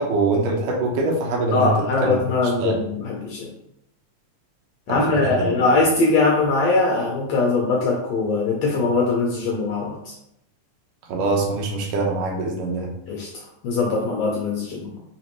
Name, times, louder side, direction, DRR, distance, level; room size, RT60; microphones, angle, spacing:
voice 1, 0.0-1.7 2.0-2.2 2.6-2.8 4.9-5.6 11.1-12.9, right 3 dB, 80° right, 0 dB, 2.5 m, -23 dB
voice 2, 1.5-3.5 4.9-10.1 13.1-13.3 13.6-14.9, left 3 dB, 75° left, -2 dB, 1.6 m, -21 dB
5.7 x 3.1 x 3.0 m, 0.79 s
omnidirectional pair, 3.7 m